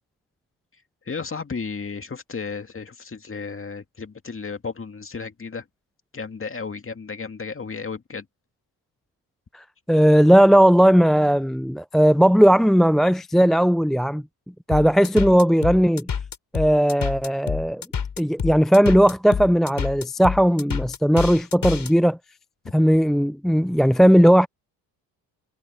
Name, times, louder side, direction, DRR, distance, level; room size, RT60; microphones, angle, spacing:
voice 1, 1.1-5.6 6.1-8.3 22.6-22.7, left 5 dB, 25° left, 2.3 m, -33 dB
voice 2, 9.5-14.2 14.7-16.1 16.5-17.8 18.2-22.2 22.7-24.5, equal, ahead, 0.3 m, -17 dB
sound 1, 14.7-21.9, left 7 dB, 45° left, 4.4 m, -28 dB
supercardioid pair, 65°, 47 cm